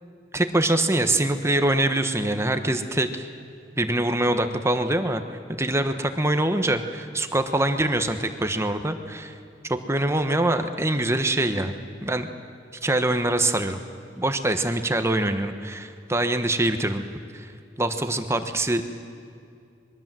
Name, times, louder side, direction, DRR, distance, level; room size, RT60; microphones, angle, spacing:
voice 1, 0.3-3.3 3.8-5.2 5.6-9.4 9.6-12.3 12.8-13.8 14.2-17.0 17.3-17.5 17.8-18.8, right 1 dB, 15° right, 7 dB, 1.2 m, -24 dB
26.5 x 22.5 x 7.7 m, 2.4 s
head